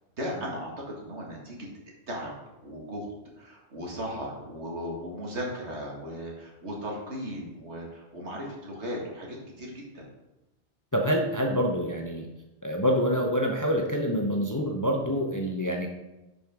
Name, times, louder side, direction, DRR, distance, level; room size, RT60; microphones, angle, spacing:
voice 1, 0.2-1.7 2.1-2.3 2.6-10.1, equal, 75° right, -1 dB, 2.1 m, -37 dB
voice 2, 10.9-12.3 12.6-15.9, equal, 20° left, 1 dB, 0.7 m, -26 dB
10.5 x 5.3 x 3.6 m, 1.0 s
omnidirectional pair, 1.2 m